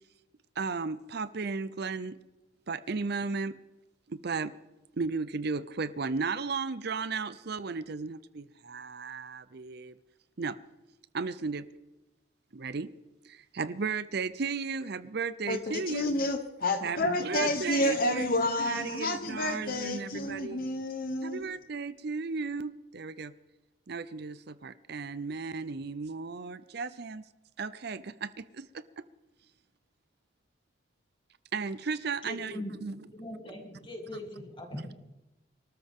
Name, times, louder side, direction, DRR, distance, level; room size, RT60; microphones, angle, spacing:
voice 1, 0.6-2.2 2.7-3.5 4.1-4.5 5.0-9.9 10.4-10.6 11.1-11.6 12.5-12.9 13.2-16.3 16.8-18.3 18.6-20.6 21.2-23.3 23.9-27.2 27.6-28.7 31.5-33.0, right 4 dB, 50° right, 15 dB, 0.6 m, -35 dB
voice 2, 15.5-21.4, left 1 dB, 45° left, 6 dB, 1.1 m, -30 dB
voice 3, 32.2-34.9, left 1 dB, 25° left, 1 dB, 3.2 m, -41 dB
24.0 x 13.5 x 3.7 m, 1.0 s
head